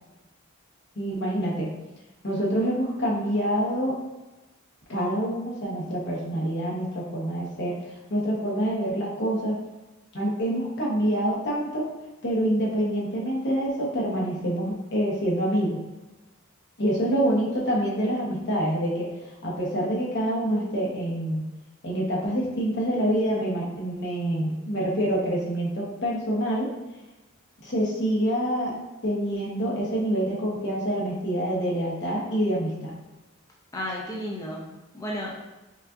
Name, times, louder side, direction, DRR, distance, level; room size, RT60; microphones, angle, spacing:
voice 1, 1.0-1.7 2.2-4.0 4.9-9.6 10.1-11.9 12.2-15.8 16.8-19.1 19.4-21.4 21.8-26.7 27.6-28.8 29.0-32.9, equal, 60° left, -4 dB, 1.0 m, -26 dB
voice 2, 33.7-35.4, equal, 15° left, -3 dB, 0.4 m, -33 dB
5.5 x 2.4 x 2.5 m, 1.1 s
head